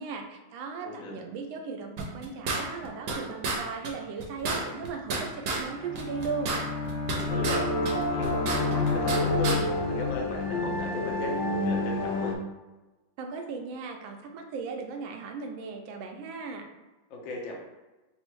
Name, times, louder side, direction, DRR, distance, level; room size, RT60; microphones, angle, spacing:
voice 1, 0.0-6.6 13.2-16.7, right 5 dB, 90° right, 3 dB, 1.4 m, -37 dB
voice 2, 0.8-1.2 7.1-9.6 9.9-12.3 17.1-17.6, left 2 dB, 60° left, -1 dB, 0.8 m, -37 dB
sound 1, 2.0-3.2 3.4-3.6 3.8-3.9 4.2-5.6 5.9-7.6 7.8-9.2 9.4-9.6, right 3 dB, 65° right, 1.0 m, -31 dB
Bowed string instrument, 5.5-10.2, left 2 dB, 30° left, 0.8 m, -35 dB
sound 2, 7.3-12.3, left 2 dB, 80° left, 1.3 m, -28 dB
4.1 x 2.0 x 4.5 m, 1.1 s
omnidirectional pair, 2.1 m